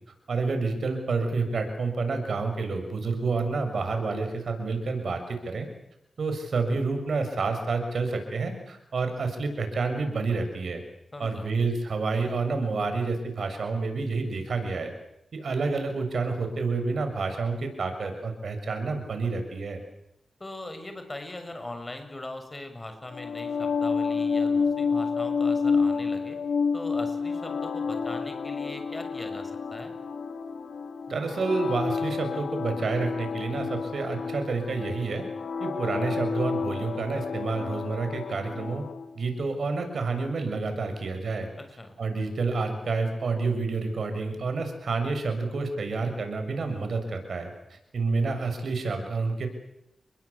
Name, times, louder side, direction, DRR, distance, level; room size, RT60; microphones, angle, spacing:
voice 1, 0.3-5.7 6.2-10.8 11.2-14.9 15.3-19.8 31.1-35.3 35.6-38.8 39.1-41.5 42.0-49.5, right 4 dB, 70° right, 6 dB, 6.8 m, -29 dB
voice 2, 11.1-11.5 20.4-26.4 26.7-29.9 41.6-41.9, left 2 dB, 25° left, 7 dB, 6.9 m, -40 dB
sound 1, 23.1-39.1, left 5 dB, 85° left, 3.5 m, -30 dB
30.0 x 22.0 x 8.5 m, 0.80 s
cardioid pair, 75°, 0 cm